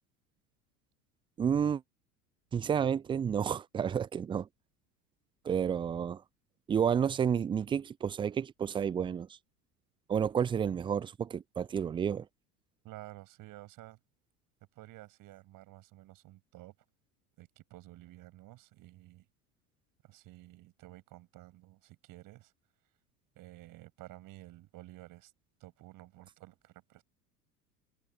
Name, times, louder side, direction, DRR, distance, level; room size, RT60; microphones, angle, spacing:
voice 1, 1.4-1.8 2.5-4.5 5.4-6.2 6.7-9.3 10.1-12.3, right 8 dB, 10° right, 0.4 m, -30 dB
voice 2, 12.8-14.0 14.8-16.7 17.4-19.3 20.0-22.5 23.4-25.3 25.6-27.0, right 17 dB, 45° right, 7.1 m, -52 dB
figure-of-eight pair, 75°, 47 cm